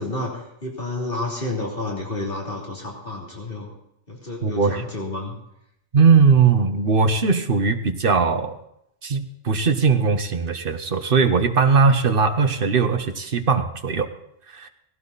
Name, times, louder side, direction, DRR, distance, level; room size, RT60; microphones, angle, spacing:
voice 1, 0.0-3.7 4.1-5.3, left 2 dB, 55° left, -3 dB, 3.4 m, -30 dB
voice 2, 4.4-4.8 5.9-8.6 9.0-14.1 14.5-14.7, right 5 dB, 55° right, 7 dB, 1.3 m, -19 dB
18.0 x 16.0 x 4.1 m, 0.78 s
omnidirectional pair, 1.1 m